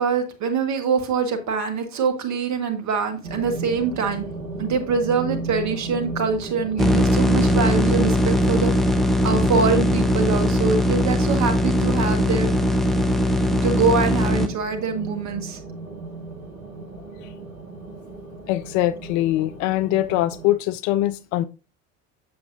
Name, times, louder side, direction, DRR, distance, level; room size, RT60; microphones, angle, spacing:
voice 1, 0.0-4.3 4.6-8.7 9.2-12.5 13.5-15.6, right 5 dB, 45° right, 1.6 m, -24 dB
sound 1, 3.2-20.6, right 3 dB, 85° right, 1.2 m, -36 dB
sound 2, 6.8-14.5, left 1 dB, ahead, 0.7 m, -20 dB
voice 2, 18.5-21.4, left 14 dB, 50° left, 0.5 m, -22 dB
7.5 x 6.9 x 2.6 m
figure-of-eight pair, 60°, 39 cm